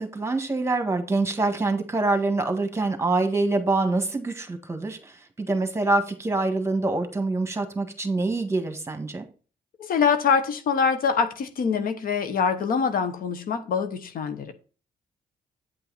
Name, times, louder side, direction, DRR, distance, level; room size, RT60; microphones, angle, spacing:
voice 1, 0.0-9.3, right 2 dB, 15° right, 1.6 m, -25 dB
voice 2, 9.8-14.5, left 6 dB, 70° left, 1.0 m, -24 dB
8.9 x 5.5 x 4.0 m
cardioid pair, 80°, 15 cm